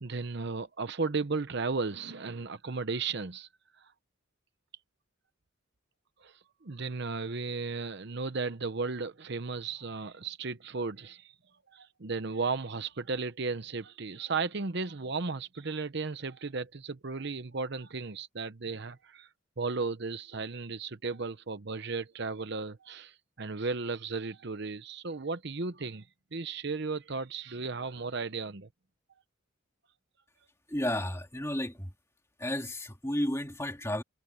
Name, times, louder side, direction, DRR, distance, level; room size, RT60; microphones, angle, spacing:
voice 1, 0.0-3.5 3.8-3.9 6.2-11.3 11.7-19.3 19.6-26.1 26.3-28.7, right 4 dB, 55° right, 0.8 m, -35 dB
voice 2, 30.7-31.9 32.4-34.0, left 1 dB, 15° left, 2.8 m, -32 dB
head